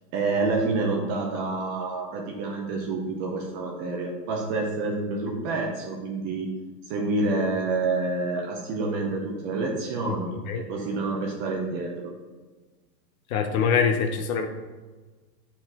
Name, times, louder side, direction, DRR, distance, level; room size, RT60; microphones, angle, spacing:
voice 1, 0.1-6.5 6.9-12.1, right 3 dB, 20° right, 0 dB, 0.5 m, -28 dB
voice 2, 13.3-14.5, left 6 dB, 55° left, 6 dB, 0.9 m, -23 dB
8.6 x 4.1 x 2.9 m, 1.3 s
hypercardioid pair, 135°, 49 cm